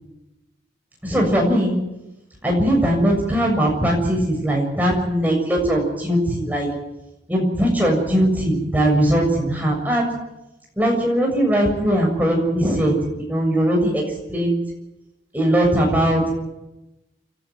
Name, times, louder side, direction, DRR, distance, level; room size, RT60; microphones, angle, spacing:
voice 1, 1.0-1.8 2.4-6.7 7.3-10.1 10.8-14.0 14.3-14.6 15.3-16.3, right 1 dB, 10° right, -1 dB, 7.1 m, -20 dB
29.5 x 12.0 x 9.5 m, 0.94 s
head